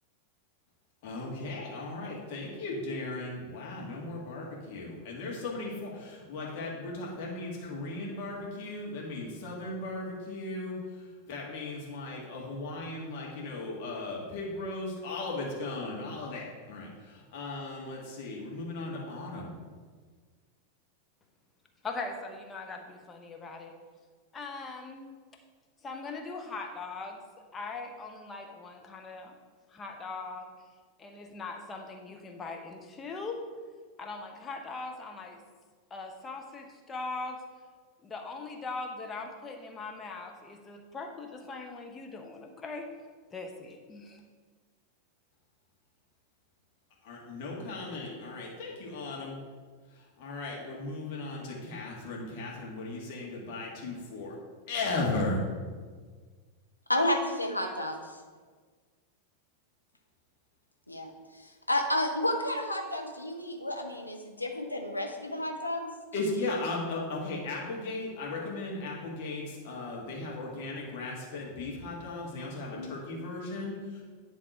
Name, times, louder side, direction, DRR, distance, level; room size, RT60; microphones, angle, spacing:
voice 1, 1.0-19.5 47.0-49.4 50.2-54.4 54.7-55.5 66.1-74.0, left 2 dB, 50° left, -3 dB, 1.8 m, -36 dB
voice 2, 21.8-23.7 24.3-25.1 25.8-27.2 27.5-29.3 29.7-30.5 31.0-33.4 34.0-35.4 35.9-37.4 38.0-42.9 43.3-44.2, left 3 dB, 20° left, 3 dB, 0.9 m, -40 dB
voice 3, 56.9-58.0 60.9-61.1 61.3-65.9 72.8-73.0, left 1 dB, 85° left, 2 dB, 0.8 m, -31 dB
10.0 x 3.5 x 4.5 m, 1.5 s
figure-of-eight pair, 90°, 0 cm